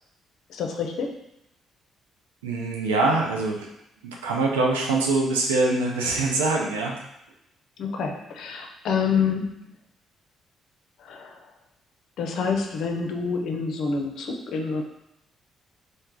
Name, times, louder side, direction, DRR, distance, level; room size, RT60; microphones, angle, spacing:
voice 1, 0.5-1.2 7.8-9.7 11.0-11.5 12.2-14.8, left 5 dB, 60° left, 3 dB, 0.5 m, -27 dB
voice 2, 2.4-3.7 4.0-7.0, right 3 dB, 80° right, -1 dB, 0.5 m, -24 dB
3.2 x 2.0 x 3.7 m, 0.82 s
figure-of-eight pair, 45°, 0 cm